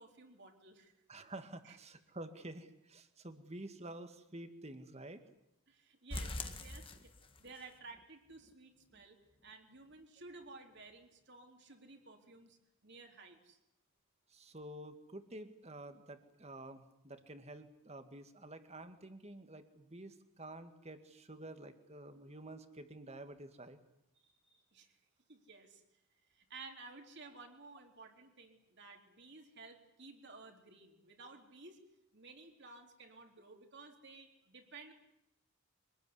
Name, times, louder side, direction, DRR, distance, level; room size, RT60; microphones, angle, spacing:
voice 1, 0.0-0.9 1.6-1.8 5.7-7.1 7.4-13.6 24.2-24.9 25.3-25.8 26.3-31.8 32.1-34.9, right 3 dB, 50° right, 3 dB, 3.9 m, -55 dB
voice 2, 1.1-5.2 14.3-23.8, right 1 dB, 30° right, 8 dB, 2.0 m, -50 dB
sound 1, 6.1-7.6 7.9-8.0 8.5-8.6 9.0-9.1, left 2 dB, 25° left, 1.8 m, -43 dB
25.5 x 19.5 x 9.8 m, 0.83 s
head